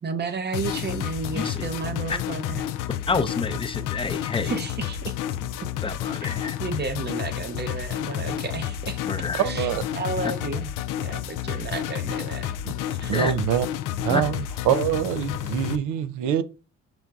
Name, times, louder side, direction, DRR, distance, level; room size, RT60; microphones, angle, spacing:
voice 1, 0.0-2.6 4.4-5.1 5.6-5.7 6.2-6.3 6.6-10.7 11.0-12.5 12.9-13.1, right 4 dB, 35° right, 0.7 m, -32 dB
sound 1, 0.5-15.8, left 10 dB, 85° left, 0.5 m, -30 dB
voice 2, 3.1-4.5 5.8-6.6 9.0-9.4 13.1-13.3 14.1-14.2, left 4 dB, 15° left, 0.6 m, -28 dB
voice 3, 9.4-9.8 12.6-12.7 13.1-13.7 14.0-16.4, right 10 dB, 90° right, 0.5 m, -24 dB
6.0 x 3.8 x 2.3 m
cardioid pair, 90°, 30 cm